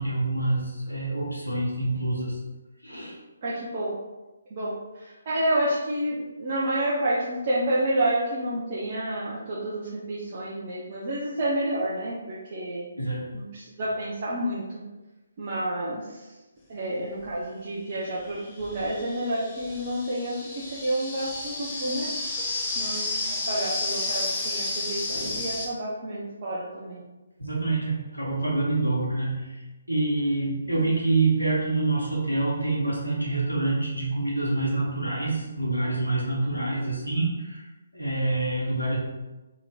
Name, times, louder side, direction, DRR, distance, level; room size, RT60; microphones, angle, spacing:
voice 1, 0.0-2.4 2.8-3.2 13.0-13.3 27.4-29.6 29.9-37.6 37.9-39.0, right 2 dB, 90° left, -5 dB, 0.8 m, -26 dB
voice 2, 3.4-3.9 4.5-12.9 13.3-14.8 15.4-16.3 16.7-22.1 22.8-27.0 30.8-31.0, right 1 dB, 40° right, -7 dB, 0.5 m, -29 dB
sound 1, 17.2-17.3 18.2-25.7, left 2 dB, 20° left, 0.6 m, -32 dB
2.8 x 2.8 x 2.2 m, 1.1 s
figure-of-eight pair, 140°, 0 cm